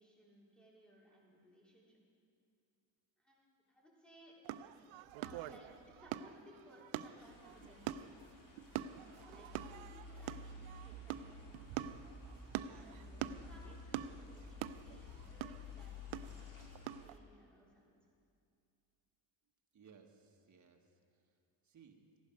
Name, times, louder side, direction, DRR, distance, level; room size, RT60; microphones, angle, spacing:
voice 1, 0.0-2.0 3.2-4.4 5.2-8.2 9.1-11.9 12.7-17.9, equal, ahead, -5 dB, 3.9 m, -62 dB
sound 1, 4.4-17.2, right 12 dB, 80° right, 0.6 m, -45 dB
sound 2, 7.2-17.1, left 2 dB, 40° left, 2.7 m, -53 dB
voice 2, 19.7-21.4 21.6-22.0, right 6 dB, 40° right, 3 dB, 1.6 m, -63 dB
15.0 x 11.0 x 5.2 m, 2.5 s
cardioid pair, 90°, 47 cm